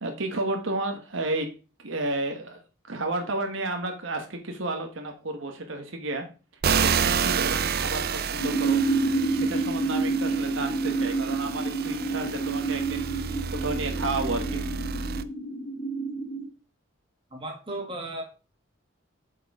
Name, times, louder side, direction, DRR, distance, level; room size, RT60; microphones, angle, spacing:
voice 1, 0.0-1.5 1.8-6.3 6.8-8.8 9.3-13.1 13.5-14.8, right 2 dB, 70° right, 4 dB, 1.2 m, -32 dB
sound 1, 6.6-15.2, right 6 dB, 50° right, 0.5 m, -30 dB
sound 2, 8.4-16.5, right 3 dB, 40° left, 1.9 m, -28 dB
voice 2, 17.3-18.2, right 1 dB, 25° right, 1 dB, 1.9 m, -35 dB
7.7 x 4.7 x 4.8 m, 0.34 s
head